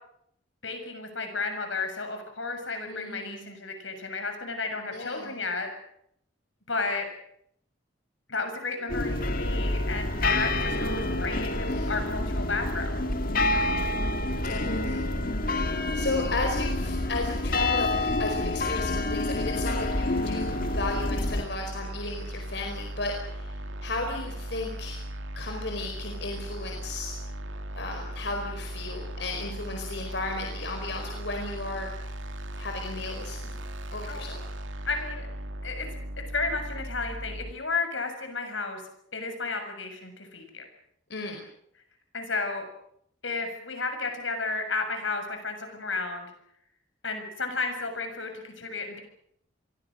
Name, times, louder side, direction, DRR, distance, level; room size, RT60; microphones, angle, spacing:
voice 1, 0.6-5.7 6.7-7.1 8.3-13.0 34.1-34.2 34.9-35.3 35.6-35.9 36.2-38.8 39.1-40.6 42.1-42.7 43.2-46.3 47.0-49.0, left 3 dB, 80° left, 6 dB, 7.0 m, -33 dB
voice 2, 2.9-3.4 4.9-5.3 11.6-12.0 14.5-15.0 15.5-23.5 23.8-25.0 25.4-27.2 27.8-31.9 32.6-33.5 33.9-34.4 41.1-41.4, left 2 dB, 65° left, 2 dB, 4.8 m, -34 dB
sound 1, 8.9-21.4, left 2 dB, 45° left, 2.0 m, -28 dB
sound 2, 19.5-37.5, right 1 dB, 85° right, 2.4 m, -37 dB
29.0 x 23.0 x 6.5 m, 0.73 s
head